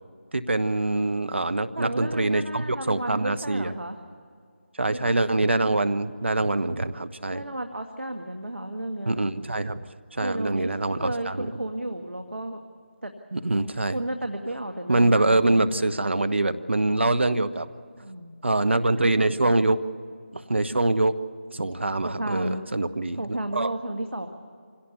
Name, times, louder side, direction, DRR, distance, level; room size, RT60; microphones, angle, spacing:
voice 1, 0.3-3.7 4.8-7.4 9.1-11.5 13.3-14.0 14.9-17.7 18.4-19.8 20.3-21.1 21.5-23.7, right 2 dB, 65° right, 10 dB, 1.1 m, -24 dB
voice 2, 1.7-4.0 4.9-5.2 7.3-9.2 10.2-10.7 11.0-12.6 13.0-13.1 13.9-15.7 18.0-18.3 22.0-22.6 23.2-24.3, right 1 dB, 80° right, 5 dB, 1.8 m, -33 dB
25.5 x 17.5 x 6.9 m, 2.2 s
figure-of-eight pair, 165°, 7 cm